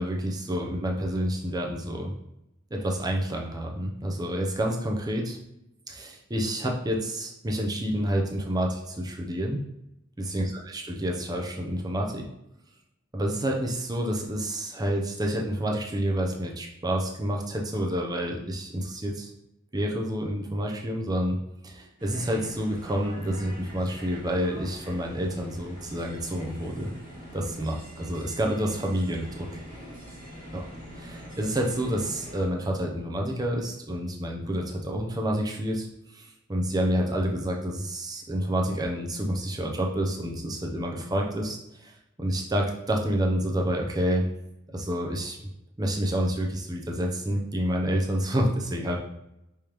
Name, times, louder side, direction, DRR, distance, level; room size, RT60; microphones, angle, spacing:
voice 1, 0.0-2.1 2.7-5.4 5.9-9.6 10.2-12.3 13.1-19.3 19.7-21.4 21.6-26.9 27.3-29.6 30.5-30.6 31.0-35.9 36.1-41.9 42.2-44.3 44.7-45.4 45.8-49.0, equal, 20° right, 0 dB, 0.6 m, -28 dB
sound 1, 22.0-32.5, equal, 40° right, 1.4 m, -44 dB
5.0 x 3.5 x 3.0 m, 0.84 s
head